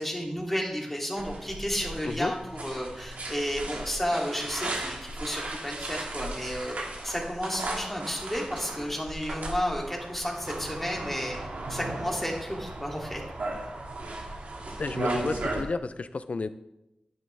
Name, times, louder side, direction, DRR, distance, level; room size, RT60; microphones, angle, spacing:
voice 1, 0.0-11.4 11.7-13.2, equal, 10° left, -1 dB, 3.0 m, -32 dB
sound 1, 1.2-15.6, right 2 dB, 80° right, 2.4 m, -36 dB
voice 2, 14.8-16.5, left 3 dB, 60° left, 13 dB, 0.6 m, -31 dB
11.0 x 10.5 x 3.5 m, 0.90 s
wide cardioid pair, 60°, 3 cm